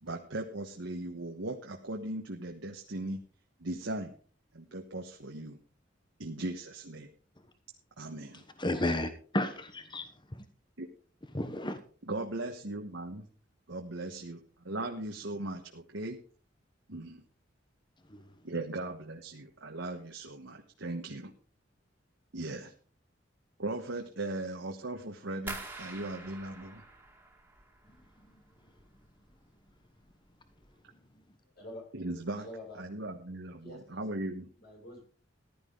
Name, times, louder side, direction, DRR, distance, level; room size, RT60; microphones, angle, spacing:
voice 1, 0.0-3.2 3.6-4.1 4.5-5.6 6.2-7.1 8.0-8.4 10.8-10.9 12.1-13.3 13.7-16.2 16.9-17.2 18.4-21.3 22.3-22.7 23.6-26.8 31.9-32.5 32.7-34.5, right 2 dB, 75° right, 2 dB, 1.4 m, -38 dB
voice 2, 8.3-10.4 11.3-11.8 18.1-18.3 28.3-28.4, left 1 dB, 25° left, 9 dB, 1.1 m, -33 dB
sound 1, 25.5-28.3 28.6-29.3 29.7-30.1 30.5-30.7, right 2 dB, 10° right, 2.4 m, -46 dB
voice 3, 31.5-31.9 32.4-32.8 33.6-34.0 34.6-35.0, left 1 dB, 55° left, 0 dB, 6.7 m, -46 dB
15.0 x 11.5 x 3.9 m, 0.42 s
head